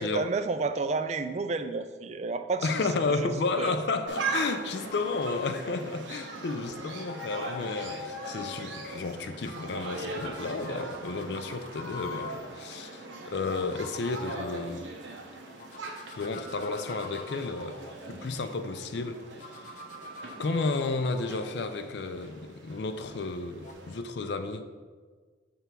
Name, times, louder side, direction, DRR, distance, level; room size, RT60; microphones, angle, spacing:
voice 1, 0.0-2.8 3.1-3.8, right 3 dB, 35° right, 9 dB, 0.3 m, -31 dB
voice 2, 2.6-14.9 16.2-17.8 18.1-19.2 19.5-19.7 20.4-24.7, left 3 dB, 60° left, 8 dB, 0.4 m, -32 dB
sound 1, 4.1-24.0, right 3 dB, 80° right, 0.9 m, -40 dB
sound 2, 4.9-5.6 6.6-8.6 9.4-12.3 13.3-14.4 15.5-18.6 19.4-22.7 23.5-23.7, left 6 dB, 40° left, 0.8 m, -45 dB
6.8 x 3.4 x 6.0 m, 1.5 s
head